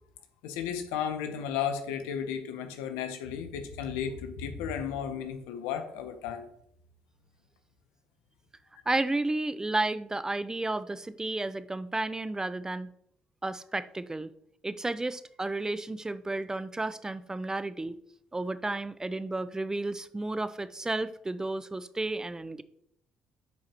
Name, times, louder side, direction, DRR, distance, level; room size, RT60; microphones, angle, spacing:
voice 1, 0.4-6.4, left 8 dB, 85° left, 0.8 m, -34 dB
voice 2, 8.9-12.9 13.4-14.3 14.6-17.9 18.3-22.6, right 2 dB, 20° right, 0.4 m, -32 dB
9.5 x 4.7 x 2.9 m
hypercardioid pair, 55°, 3 cm